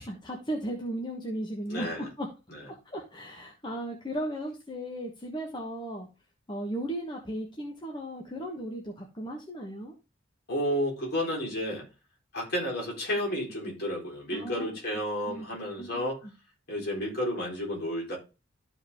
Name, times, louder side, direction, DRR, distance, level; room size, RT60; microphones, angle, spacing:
voice 1, 0.0-2.3 2.7-6.1 6.5-9.9 14.3-14.7 15.3-15.4 15.8-16.1, right 1 dB, 25° left, 1.2 m, -36 dB
voice 2, 1.7-2.1 2.5-2.7 10.5-11.9 12.3-16.3 16.7-18.2, equal, 50° left, 4.1 m, -31 dB
13.0 x 5.0 x 3.6 m
head